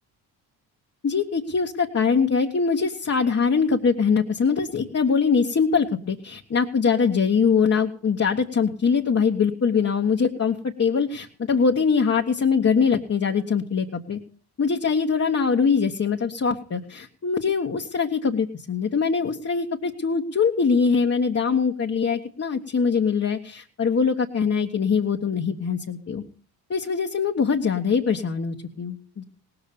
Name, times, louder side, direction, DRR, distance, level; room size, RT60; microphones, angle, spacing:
voice 1, 1.0-14.2 14.6-26.2 26.7-29.2, left 5 dB, 30° left, 1 dB, 1.3 m, -23 dB
18.5 x 7.0 x 6.8 m, 0.43 s
hypercardioid pair, 55°, 48 cm